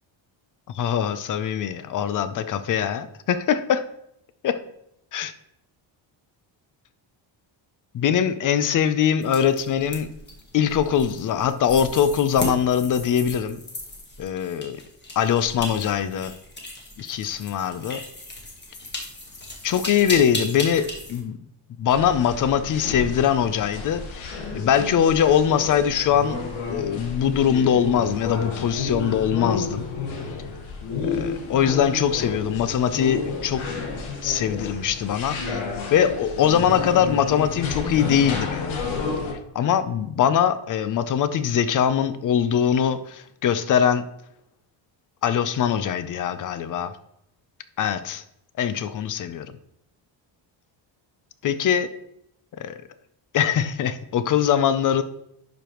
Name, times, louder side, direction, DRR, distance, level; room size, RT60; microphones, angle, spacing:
voice 1, 0.7-3.8 4.4-4.5 5.1-5.3 7.9-10.1 10.5-13.6 14.2-14.8 15.2-16.3 17.0-18.0 19.6-21.4 21.8-24.3 24.5-29.9 31.1-33.6 34.2-35.6 35.9-38.8 39.5-44.0 45.2-47.0 47.8-48.2 48.6-49.5 51.4-51.9 52.6-52.8 53.3-55.0, left 8 dB, 40° left, 12 dB, 0.6 m, -22 dB
sound 1, 9.2-21.2, left 2 dB, 20° left, 1.3 m, -36 dB
sound 2, 21.9-39.3, left 4 dB, 80° left, 1.5 m, -31 dB
11.0 x 5.2 x 3.0 m, 0.77 s
cardioid pair, 150°, 47 cm